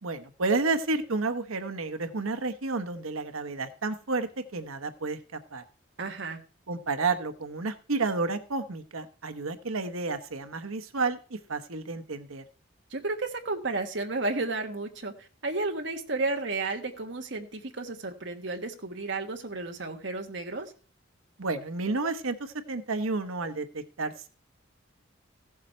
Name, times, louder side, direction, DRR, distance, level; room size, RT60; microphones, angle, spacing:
voice 1, 0.0-5.6 6.7-12.4 21.4-24.3, right 3 dB, 80° right, 9 dB, 1.1 m, -31 dB
voice 2, 6.0-6.4 12.9-20.7, right 3 dB, 55° right, 4 dB, 1.4 m, -32 dB
15.5 x 7.3 x 4.4 m, 0.37 s
head